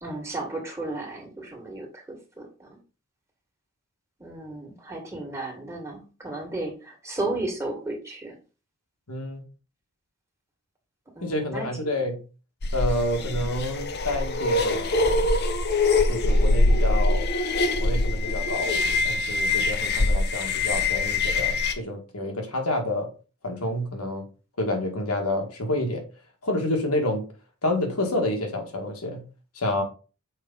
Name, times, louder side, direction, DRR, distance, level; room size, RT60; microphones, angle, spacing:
voice 1, 0.0-2.8 4.2-8.4 11.2-11.9 13.2-13.5, right 2 dB, 15° right, 1 dB, 1.8 m, -34 dB
voice 2, 9.1-9.4 11.2-12.2 12.7-15.3 16.1-17.3 17.8-18.8 19.0-23.1 23.4-24.2 24.6-26.0 26.4-27.2 27.6-29.2 29.6-29.8, left 1 dB, 85° left, 3 dB, 1.8 m, -28 dB
sound 1, 12.6-21.7, left 2 dB, 50° left, 0.8 m, -23 dB
6.5 x 4.7 x 3.9 m, 0.34 s
head